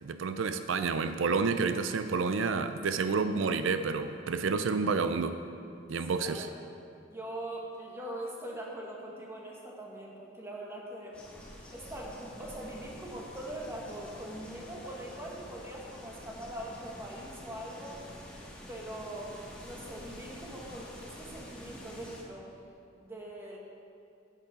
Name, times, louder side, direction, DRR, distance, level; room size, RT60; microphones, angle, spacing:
voice 1, 0.0-5.4 5.9-6.5, right 4 dB, 85° right, 10 dB, 0.5 m, -29 dB
voice 2, 6.1-6.5 7.1-11.2 11.7-18.1 18.7-22.5 23.0-23.6, right 1 dB, 15° right, -2 dB, 1.6 m, -42 dB
sound 1, 11.1-22.2, left 1 dB, 5° left, 1.6 m, -48 dB
9.3 x 8.6 x 5.8 m, 2.6 s
head